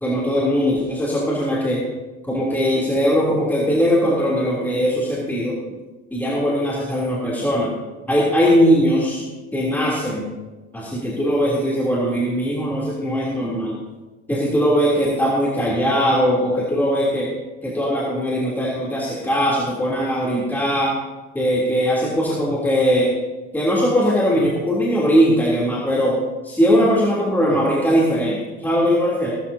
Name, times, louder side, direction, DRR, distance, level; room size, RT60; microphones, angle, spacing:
voice 1, 0.0-1.8 2.3-5.5 6.1-7.7 8.1-9.2 9.5-10.3 10.7-13.8 14.3-17.3 17.6-20.9 21.3-23.1 23.5-26.2 26.4-29.3, equal, 5° left, -5 dB, 3.3 m, -20 dB
20.0 x 13.0 x 2.8 m, 1.2 s
supercardioid pair, 100°, 31 cm